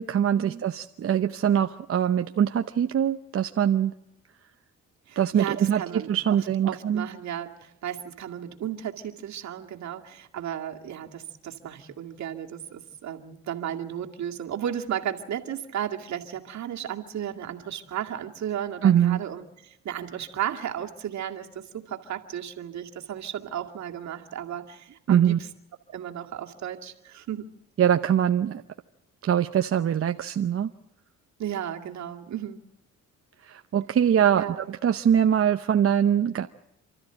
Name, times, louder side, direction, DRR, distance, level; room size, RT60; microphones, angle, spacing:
voice 1, 0.0-3.9 5.2-7.1 18.8-19.2 25.1-25.4 27.8-28.6 29.2-30.7 33.4-36.5, right 9 dB, 50° right, 7 dB, 0.8 m, -23 dB
voice 2, 5.1-6.4 6.6-25.4 25.9-27.5 31.4-32.6 34.3-34.6, right 10 dB, 65° right, 2 dB, 2.3 m, -34 dB
28.5 x 13.5 x 9.0 m, 0.86 s
cardioid pair, 90°, 30 cm